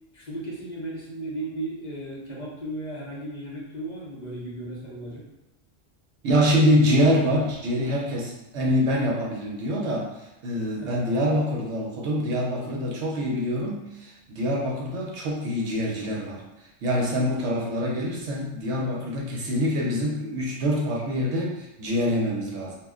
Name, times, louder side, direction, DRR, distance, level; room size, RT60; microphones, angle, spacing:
voice 1, 0.1-5.2 10.7-11.0, right 1 dB, 40° left, -5 dB, 0.7 m, -35 dB
voice 2, 6.2-10.1 10.4-16.4 16.8-22.7, equal, 65° right, -3 dB, 0.9 m, -25 dB
2.4 x 2.1 x 3.5 m, 0.92 s
omnidirectional pair, 1.3 m